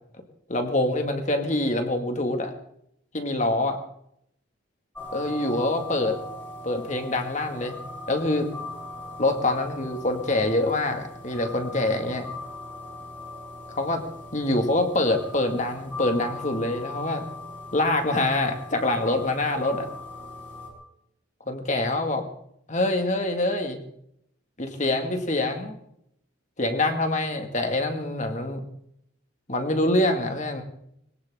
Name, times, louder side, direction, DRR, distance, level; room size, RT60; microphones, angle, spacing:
voice 1, 0.5-2.5 3.1-3.8 5.1-6.2 6.6-7.8 8.1-8.5 9.2-12.3 13.8-14.0 14.3-17.2 17.7-19.9 21.5-22.2 22.7-23.8 24.6-25.7 26.6-28.6 29.5-30.6, left 2 dB, 40° left, 5 dB, 2.1 m, -25 dB
sound 1, 4.9-20.7, left 2 dB, 10° left, 5.4 m, -40 dB
21.5 x 18.0 x 3.7 m, 0.74 s
head